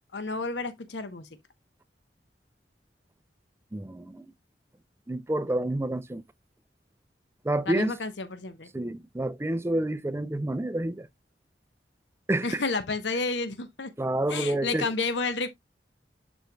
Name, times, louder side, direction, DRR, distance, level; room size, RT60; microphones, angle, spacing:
voice 1, 0.1-1.3 7.7-8.7 12.4-13.9 14.3-15.5, left 3 dB, 90° left, 0.9 m, -31 dB
voice 2, 3.7-4.3 5.1-6.2 7.4-8.0 8.7-11.1 12.3-12.6 14.0-14.9, right 1 dB, 15° right, 0.4 m, -29 dB
11.5 x 4.4 x 2.2 m
head